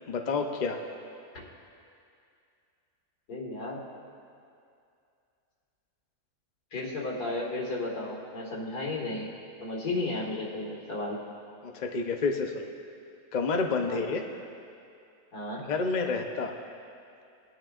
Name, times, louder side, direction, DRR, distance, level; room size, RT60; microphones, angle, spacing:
voice 1, 0.1-0.8 11.6-12.7 13.3-14.2 15.7-16.6, left 4 dB, 40° left, 3 dB, 0.6 m, -29 dB
voice 2, 3.3-3.8 6.7-9.3 9.6-11.2 13.9-14.2 15.3-15.6, left 2 dB, 75° left, -3 dB, 2.4 m, -34 dB
21.0 x 10.5 x 2.5 m, 2.5 s
omnidirectional pair, 1.7 m